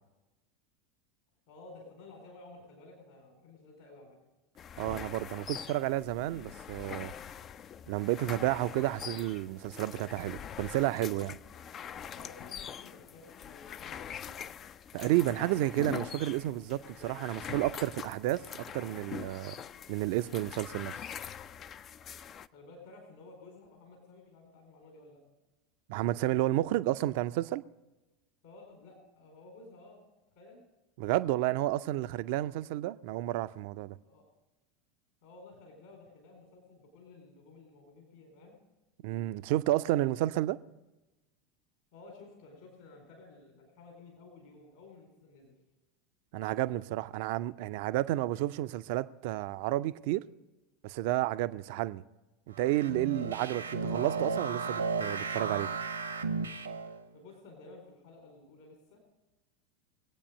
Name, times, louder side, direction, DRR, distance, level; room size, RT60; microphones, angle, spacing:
voice 1, 1.5-4.2 12.1-14.4 22.5-25.2 28.4-30.0 30.3-30.6 34.0-34.2 35.2-38.5 41.9-45.5 57.1-59.0, left 3 dB, 60° left, 4.4 m, -53 dB
sound 1, 4.6-22.5, left 8 dB, 30° left, 0.4 m, -44 dB
voice 2, 4.8-7.1 7.9-11.4 14.9-19.6 19.9-20.9 25.9-27.6 31.0-34.0 39.0-40.6 46.3-50.3 50.8-52.0 52.5-55.7, right 15 dB, 55° right, 0.4 m, -31 dB
sound 2, 52.5-57.0, right 4 dB, 80° right, 1.0 m, -34 dB
23.0 x 8.6 x 5.2 m
figure-of-eight pair, 80°, 0 cm